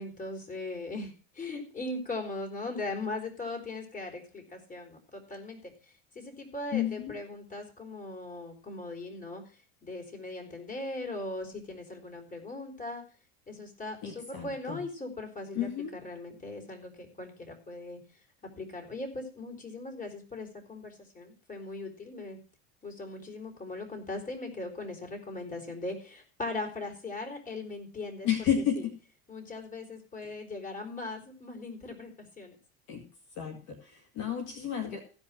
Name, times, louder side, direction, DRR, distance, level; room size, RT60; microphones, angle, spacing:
voice 1, 0.0-13.0 13.5-22.4 22.8-28.3 28.8-28.9 29.3-32.6, left 2 dB, 25° left, 2 dB, 4.3 m, -39 dB
voice 2, 6.7-7.1 14.0-14.8 15.5-15.9 28.2-28.9 32.9-33.0 33.4-35.0, left 9 dB, 60° left, 3 dB, 2.3 m, -31 dB
16.0 x 5.5 x 6.2 m, 0.38 s
supercardioid pair, 110°, 32 cm